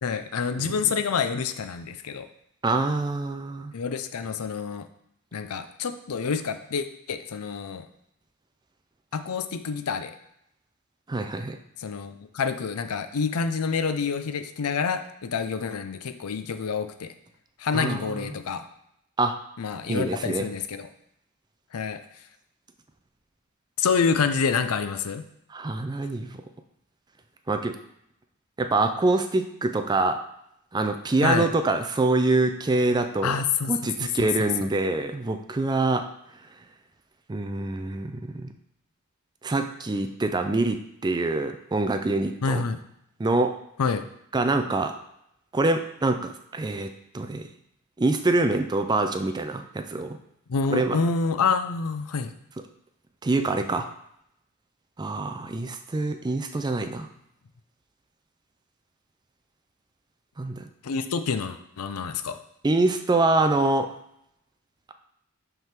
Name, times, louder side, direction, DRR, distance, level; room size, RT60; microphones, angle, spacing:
voice 1, 0.0-2.3 3.7-4.9 5.3-7.9 9.1-10.1 11.8-17.1 17.6-18.7 19.6-20.9 21.7-22.0 23.8-25.2 31.2-31.5 33.2-33.7 34.0-34.7 42.4-42.8 43.8-44.1 50.5-52.3 60.8-62.4, left 5 dB, 85° left, 10 dB, 0.5 m, -27 dB
voice 2, 2.6-3.7 11.1-11.6 17.7-18.2 19.2-19.4 19.9-20.5 25.5-26.4 27.5-27.8 28.6-30.2 30.7-33.4 33.7-36.0 37.3-38.5 39.4-40.8 41.0-42.6 43.2-43.5 44.3-44.9 45.5-46.9 47.1-47.4 48.0-50.2 50.7-51.0 53.2-53.9 55.0-57.1 60.4-60.7 62.6-63.9, right 2 dB, 20° right, 7 dB, 0.4 m, -25 dB
5.6 x 3.7 x 5.8 m, 0.78 s
head